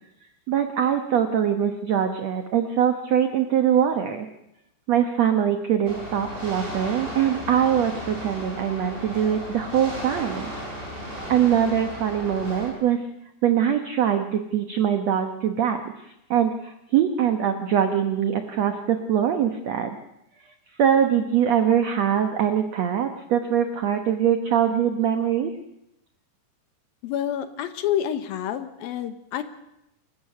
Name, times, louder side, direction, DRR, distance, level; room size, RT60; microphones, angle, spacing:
voice 1, 0.5-4.3 4.9-10.5 11.3-13.0 13.4-15.8 16.3-20.0 20.8-25.5, right 9 dB, 85° right, 7 dB, 1.5 m, -22 dB
sound 1, 5.9-12.7, equal, 15° right, 5.3 m, -35 dB
voice 2, 27.0-29.4, left 10 dB, 70° left, 10 dB, 2.5 m, -28 dB
28.0 x 15.0 x 6.7 m, 0.85 s
omnidirectional pair, 4.8 m